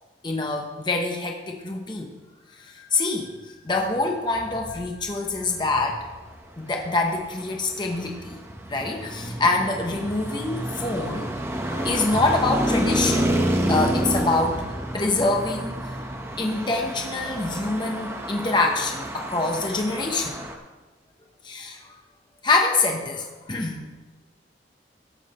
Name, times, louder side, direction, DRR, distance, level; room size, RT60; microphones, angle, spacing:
voice 1, 0.2-2.1 2.6-3.3 3.6-6.0 6.6-8.4 8.7-15.8 16.4-20.4 21.4-22.0 22.4-23.9, left 3 dB, 25° left, 1 dB, 0.9 m, -25 dB
Traffic noise roadway noise, 6.8-20.6, right 1 dB, 15° right, 0.8 m, -29 dB
13.5 x 7.1 x 4.3 m, 1.2 s
head